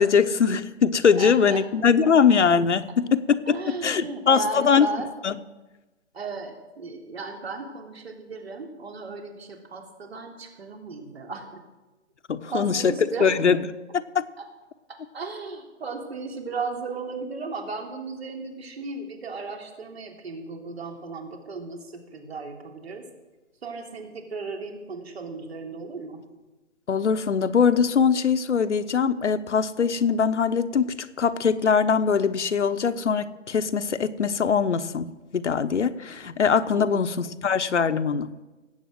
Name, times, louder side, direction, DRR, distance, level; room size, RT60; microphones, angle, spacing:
voice 1, 0.0-3.6 3.8-4.9 5.2-5.3 12.3-12.9 13.2-13.6 13.9-14.2 26.9-35.1 35.3-38.3, left 6 dB, 70° left, 9 dB, 1.1 m, -22 dB
voice 2, 1.2-1.6 3.4-5.1 6.1-11.6 12.5-13.4 14.4-14.5 14.9-23.1 23.6-26.2 36.7-37.0, right 4 dB, 55° right, 3 dB, 3.2 m, -35 dB
19.0 x 8.5 x 7.6 m, 1.1 s
hypercardioid pair, 160°, 37 cm